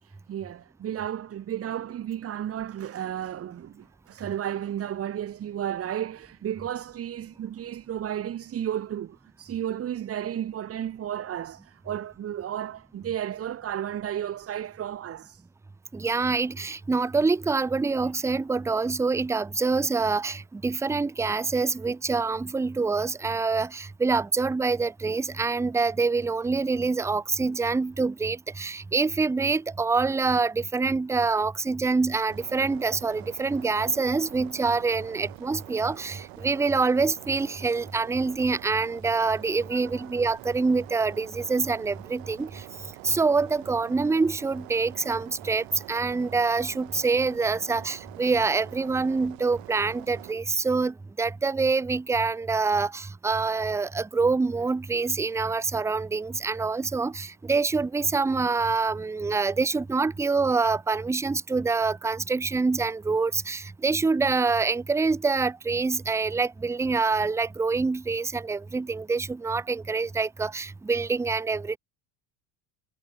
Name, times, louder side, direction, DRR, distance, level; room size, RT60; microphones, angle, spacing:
voice 1, 0.0-15.4 39.7-39.8, right 10 dB, 30° right, 4.1 m, -33 dB
voice 2, 15.9-42.6 43.0-71.8, right 4 dB, 5° right, 0.7 m, -26 dB
sound 1, 32.3-50.3, right 32 dB, 85° right, 3.7 m, -46 dB
cardioid pair, 180°, 44 cm